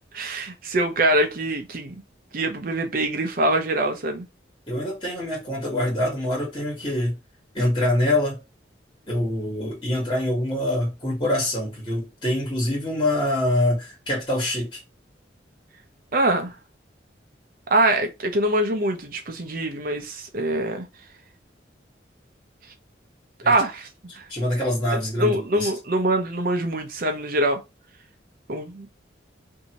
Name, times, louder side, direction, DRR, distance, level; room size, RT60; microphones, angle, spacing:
voice 1, 0.1-1.9 2.3-4.2 16.1-16.5 17.7-20.8 23.5-23.9 24.1-24.2 25.2-27.6 28.5-28.9, right 1 dB, 50° right, 0.6 m, -24 dB
voice 2, 4.7-7.1 7.5-8.4 9.1-14.8 23.4-23.5 24.3-25.7, left 1 dB, 25° left, 1.4 m, -25 dB
2.7 x 2.7 x 2.9 m
head